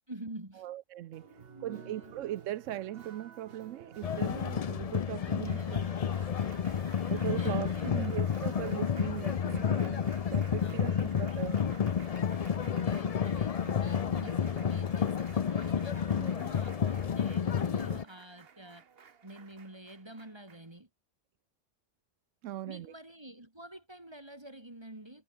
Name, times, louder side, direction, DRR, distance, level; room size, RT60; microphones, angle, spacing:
voice 1, 0.1-0.7 1.2-2.2 5.2-5.9 6.2-6.3 6.6-7.0 7.4-8.1 10.6-11.0 12.6-18.9 19.2-20.9 22.7-25.2, right 1 dB, 20° right, 2.3 m, -48 dB
voice 2, 0.6-5.8 7.1-11.9 14.2-14.3 22.4-22.9, right 13 dB, 85° right, 1.0 m, -39 dB
Applause, 1.1-20.8, right 6 dB, 55° right, 1.3 m, -54 dB
sound 1, 4.0-18.0, left 7 dB, 45° left, 0.5 m, -31 dB
omnidirectional pair, 1.3 m